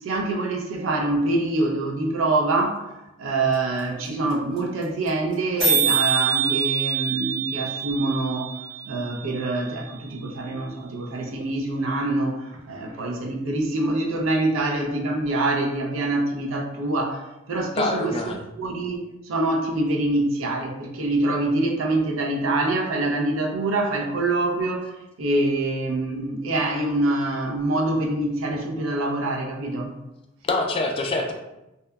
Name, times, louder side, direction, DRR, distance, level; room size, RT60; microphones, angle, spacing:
voice 1, 0.0-8.6 8.9-18.1 18.6-29.9, right 2 dB, 75° right, 2 dB, 0.5 m, -25 dB
sound 1, 3.5-3.6 3.8-4.3 4.6-4.7 4.8-5.1 5.3-5.4 5.6-9.6, right 7 dB, 20° right, 1.3 m, -25 dB
voice 2, 17.7-18.4 30.4-31.3, left 2 dB, 30° left, 2 dB, 0.3 m, -25 dB
2.7 x 2.2 x 2.2 m, 0.95 s
head